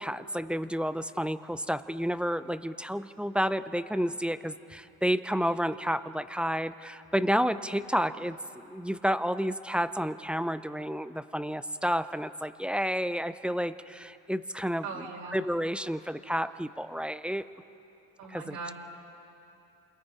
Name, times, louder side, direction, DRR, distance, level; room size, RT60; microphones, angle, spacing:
voice 1, 0.0-17.4 18.3-18.7, equal, 5° right, 13 dB, 0.5 m, -30 dB
voice 2, 14.8-15.4 18.2-18.7, right 4 dB, 70° right, -2 dB, 5.8 m, -39 dB
28.0 x 22.0 x 4.9 m, 2.9 s
supercardioid pair, 100°, 37 cm